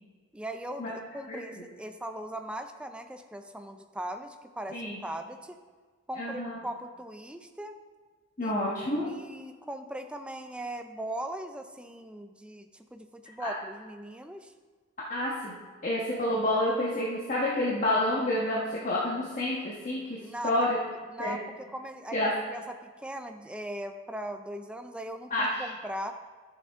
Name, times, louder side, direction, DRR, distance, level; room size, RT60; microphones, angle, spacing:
voice 1, 0.3-5.6 6.1-7.8 8.4-8.5 9.0-14.5 20.2-20.6 21.1-21.4 21.7-22.2 22.5-25.3 25.6-26.1, right 1 dB, 5° right, 6 dB, 0.4 m, -39 dB
voice 2, 1.3-1.6 4.7-5.0 6.2-6.6 8.4-9.1 13.4-13.5 15.1-20.2 20.4-20.8 21.2-21.4 22.1-22.3 25.3-25.7, left 1 dB, 40° left, -5 dB, 1.3 m, -29 dB
13.0 x 7.1 x 3.6 m, 1.5 s
head